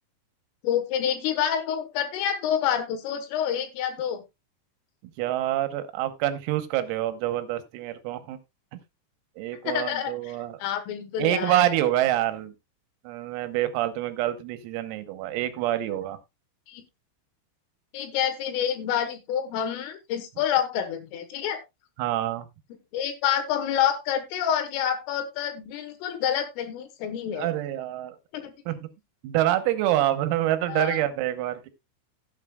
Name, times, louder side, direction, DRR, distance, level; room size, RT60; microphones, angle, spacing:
voice 1, 0.6-4.2 9.7-10.1 10.6-11.7 16.7-16.8 17.9-21.6 22.9-27.5 28.3-28.5 30.7-31.0, left 9 dB, 75° left, 3.8 m, -28 dB
voice 2, 5.2-8.4 8.7-8.8 9.4-10.6 11.2-12.5 13.1-16.2 22.0-22.5 27.4-28.2 28.7-28.9 29.2-31.7, right 14 dB, 85° right, 3.7 m, -26 dB
16.0 x 8.2 x 2.3 m
omnidirectional pair, 6.0 m